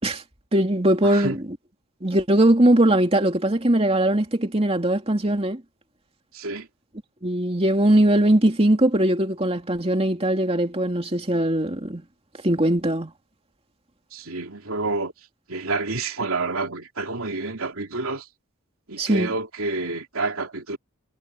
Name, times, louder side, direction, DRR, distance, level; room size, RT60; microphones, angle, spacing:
voice 1, 0.5-1.4 2.0-5.6 7.2-12.0 12.4-13.1 19.0-19.3, right 1 dB, 30° right, 2.7 m, -20 dB
voice 2, 1.0-1.4 6.3-6.7 14.1-15.1 15.5-18.2 18.9-20.8, right 3 dB, 80° right, 3.0 m, -28 dB
head